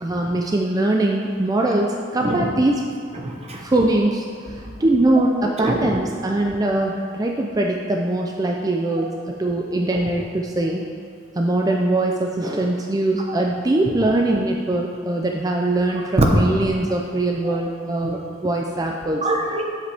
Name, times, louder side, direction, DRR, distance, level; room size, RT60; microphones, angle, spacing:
voice 1, 0.0-2.8 3.6-10.8 11.3-19.3, right 2 dB, 20° right, 0 dB, 0.4 m, -22 dB
voice 2, 3.1-3.6 4.6-4.7 5.6-5.9 13.3-13.4 16.2-16.3 17.4-17.5 17.9-18.2 19.2-19.6, right 1 dB, 35° right, 0 dB, 1.1 m, -23 dB
10.5 x 7.5 x 3.5 m, 2.4 s
head